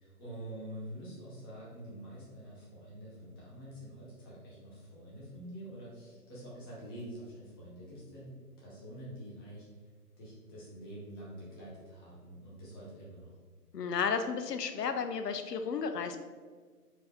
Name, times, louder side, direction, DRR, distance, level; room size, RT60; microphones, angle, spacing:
voice 1, 0.0-9.7 10.2-13.3, right 1 dB, 15° left, -7 dB, 0.9 m, -46 dB
voice 2, 13.7-16.2, left 6 dB, 80° left, 8 dB, 0.6 m, -33 dB
4.6 x 2.6 x 4.2 m, 1.5 s
figure-of-eight pair, 150°, 48 cm